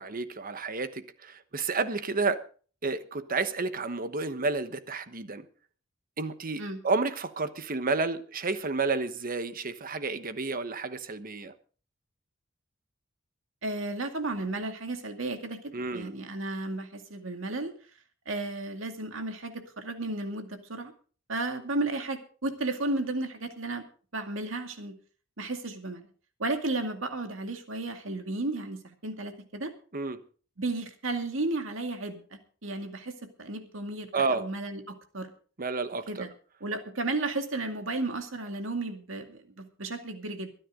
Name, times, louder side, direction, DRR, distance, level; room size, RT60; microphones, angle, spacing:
voice 1, 0.0-2.4 2.8-5.4 6.2-11.5 15.7-16.1 29.9-30.2 34.1-34.5 35.6-36.3, right 3 dB, 45° right, 1.1 m, -31 dB
voice 2, 13.6-17.7 18.3-20.9 21.3-23.9 24.1-24.9 25.4-26.1 26.4-29.7 30.6-35.3 36.1-36.3 36.6-40.5, right 2 dB, 70° right, 2.3 m, -33 dB
23.0 x 10.0 x 3.8 m
head